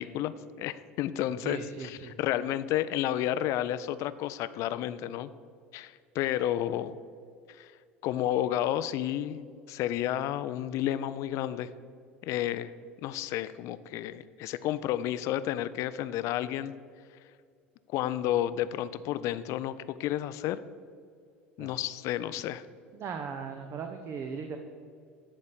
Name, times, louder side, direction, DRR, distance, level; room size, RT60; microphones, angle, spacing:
voice 1, 0.0-1.6 2.2-5.3 5.7-7.0 7.5-7.7 8.0-11.7 12.2-12.7 13.0-16.7 17.9-20.6 21.6-22.6, left 12 dB, 55° left, 14 dB, 0.5 m, -31 dB
voice 2, 1.4-2.2 21.6-21.8 22.9-24.6, right 5 dB, 40° right, 5 dB, 0.8 m, -38 dB
10.5 x 4.2 x 6.8 m, 2.2 s
hypercardioid pair, 70°, 6 cm